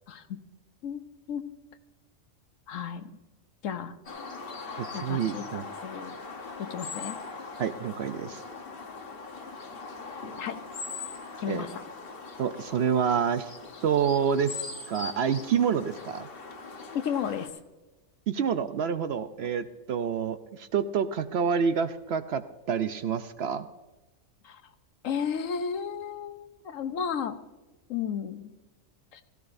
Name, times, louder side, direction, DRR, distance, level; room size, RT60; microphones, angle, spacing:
voice 1, 0.1-0.4 0.8-1.0 1.3-1.4 2.7-3.1 3.6-3.9 4.9-6.2 6.6-7.2 10.4-10.6 11.4-11.7 16.9-17.5 24.4-24.6 25.0-27.4 27.9-28.5 29.1-29.2, left 7 dB, 75° left, 9 dB, 1.2 m, -33 dB
sound 1, 4.1-17.5, left 4 dB, 45° left, 1.3 m, -41 dB
voice 2, 4.8-5.6 7.6-8.4 11.5-11.7 12.4-13.5 13.8-16.3 18.3-22.4 22.7-23.7, right 7 dB, 65° right, 10 dB, 0.7 m, -28 dB
16.5 x 16.0 x 2.6 m, 1.1 s
omnidirectional pair, 1.4 m